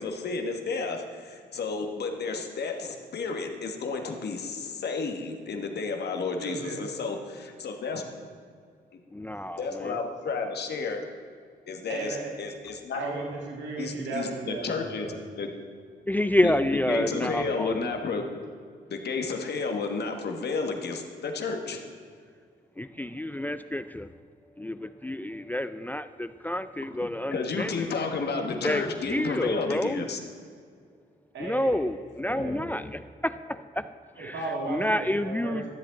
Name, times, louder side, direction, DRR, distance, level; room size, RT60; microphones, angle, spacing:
voice 1, 0.0-8.0 9.6-11.0 11.7-13.0 13.8-15.1 15.4-15.5 16.4-18.2 18.9-21.8 27.0-30.2, left 4 dB, 60° left, 4 dB, 1.3 m, -32 dB
voice 2, 6.4-6.8 11.9-12.3 12.9-15.2 31.3-31.9 32.3-32.6 34.2-35.6, right 3 dB, 75° right, -1 dB, 1.9 m, -35 dB
voice 3, 9.1-10.0 16.1-17.9 22.8-24.1 24.6-27.9 28.6-30.0 31.4-33.9 34.2-34.3 34.7-35.6, left 1 dB, 10° left, 12 dB, 0.3 m, -29 dB
13.5 x 7.5 x 3.9 m, 2.1 s
supercardioid pair, 55°, 19 cm